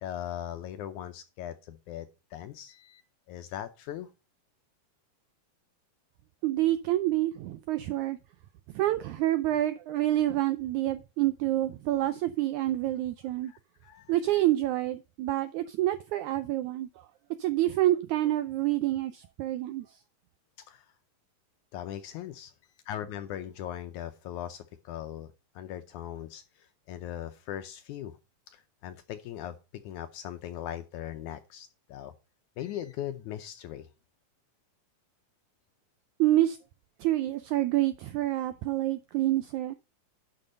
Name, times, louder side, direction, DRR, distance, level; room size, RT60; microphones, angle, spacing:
voice 1, 0.0-3.0 3.3-4.1 13.4-14.4 20.7-20.9 21.7-22.5 22.9-28.2 28.5-32.1 32.6-33.9, left 11 dB, 80° left, 1.8 m, -40 dB
voice 2, 6.4-8.2 8.7-13.5 14.1-16.9 17.4-19.9 36.2-36.6 37.0-39.7, right 14 dB, 85° right, 1.7 m, -27 dB
11.0 x 5.4 x 5.2 m
omnidirectional pair, 4.0 m